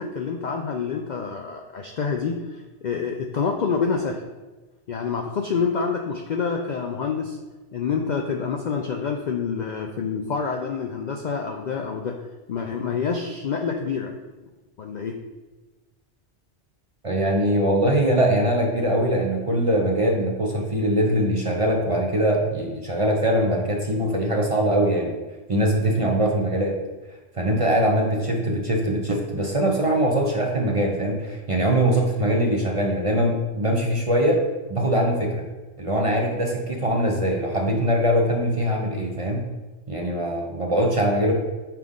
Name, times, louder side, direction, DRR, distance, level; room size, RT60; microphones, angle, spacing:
voice 1, 0.0-4.2 4.9-7.4 7.7-12.2 12.5-14.1 14.8-15.2, left 5 dB, 60° left, 2 dB, 0.4 m, -27 dB
voice 2, 17.0-25.2 25.5-26.8 27.3-34.4 34.7-35.5 35.8-39.4 39.9-41.3, right 1 dB, 35° right, 0 dB, 0.6 m, -22 dB
5.8 x 4.8 x 3.7 m, 1.2 s
omnidirectional pair, 1.2 m